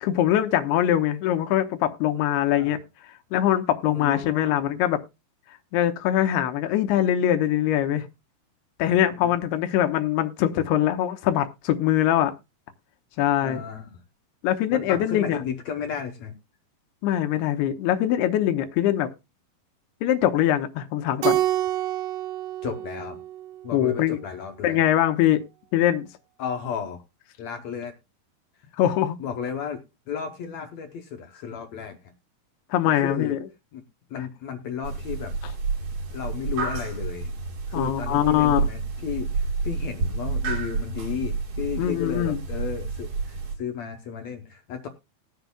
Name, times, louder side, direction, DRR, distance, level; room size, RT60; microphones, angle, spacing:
voice 1, 0.0-2.8 3.3-5.0 5.7-8.1 8.8-12.3 13.2-13.6 14.4-15.4 17.0-19.1 20.0-21.4 23.7-24.2 24.6-25.5 25.7-26.1 28.8-29.2 32.7-33.4 37.7-38.6 41.8-42.4, left 11 dB, 90° left, 2.9 m, -22 dB
voice 2, 3.9-4.6 8.8-9.3 13.4-14.0 14.7-16.3 22.6-23.2 23.6-24.8 26.4-27.0 27.4-28.0 29.2-29.8 30.1-32.0 32.9-33.4 33.7-33.8 34.1-35.3 36.1-37.3 37.7-44.9, left 7 dB, 70° left, 1.7 m, -33 dB
Keyboard (musical), 21.2-23.9, right 13 dB, 85° right, 1.8 m, -27 dB
sound 1, 34.8-43.6, right 4 dB, 60° right, 3.4 m, -30 dB
20.0 x 7.8 x 2.2 m
omnidirectional pair, 4.5 m